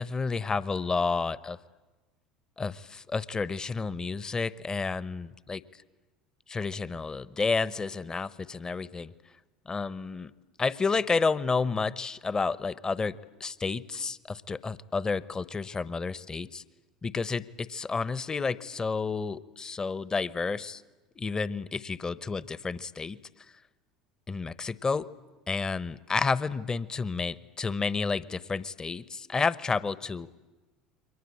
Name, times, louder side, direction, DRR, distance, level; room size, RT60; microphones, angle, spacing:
voice 1, 0.0-1.6 2.6-5.6 6.5-9.1 9.7-10.3 10.6-16.6 17.0-20.8 21.2-23.2 24.3-25.1 25.5-30.3, left 4 dB, 20° left, 18 dB, 1.0 m, -30 dB
29.0 x 23.0 x 8.6 m, 1.2 s
figure-of-eight pair, 70°, 3 cm